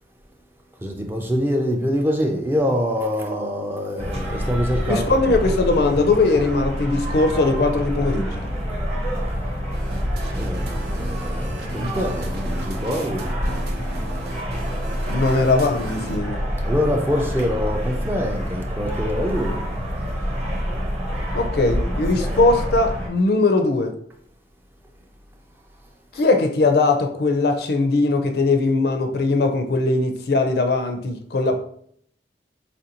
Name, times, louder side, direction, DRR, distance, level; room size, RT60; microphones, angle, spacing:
voice 1, 0.8-5.2 10.3-13.3 16.7-19.6, equal, 10° right, 0.3 m, -25 dB
sound 1, 4.0-23.1, equal, 35° right, 1.0 m, -27 dB
voice 2, 4.9-8.4 15.1-16.4 21.3-23.9 26.1-31.6, left 3 dB, 60° left, 0.4 m, -20 dB
sound 2, 9.7-16.2, right 2 dB, 60° right, 0.6 m, -38 dB
4.1 x 2.5 x 2.8 m
head